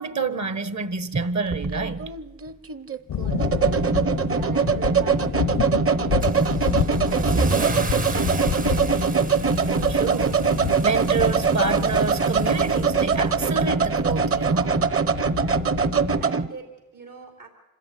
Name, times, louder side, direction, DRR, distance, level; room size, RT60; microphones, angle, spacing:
voice 1, 0.0-2.1 9.9-10.5 10.8-14.8, right 4 dB, 60° right, 1.5 m, -28 dB
sound 1, 1.1-16.5, right 5 dB, 45° right, 1.0 m, -23 dB
sound 2, 3.1-16.2, left 9 dB, 80° left, 0.7 m, -30 dB
voice 2, 3.1-6.7 7.1-9.2 15.2-15.7 16.2-17.5, right 5 dB, 80° right, 3.9 m, -45 dB
Car / Engine starting / Accelerating revving vroom, 6.2-13.6, right 3 dB, 25° right, 0.6 m, -32 dB
26.0 x 13.5 x 9.5 m
cardioid pair, 60°, 32 cm